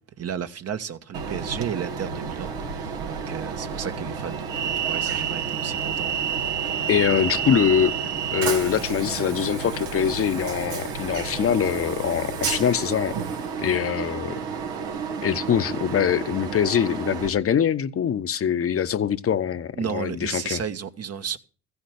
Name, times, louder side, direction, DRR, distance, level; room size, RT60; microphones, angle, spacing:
voice 1, 0.2-6.1 19.8-21.4, right 8 dB, 50° right, 1.4 m, -33 dB
Train, 1.1-17.3, right 6 dB, 90° right, 2.4 m, -30 dB
voice 2, 6.9-7.9 8.3-13.2 13.6-14.3 15.2-20.6, left 8 dB, 45° left, 1.0 m, -23 dB
15.0 x 7.2 x 6.5 m
hypercardioid pair, 60°, 31 cm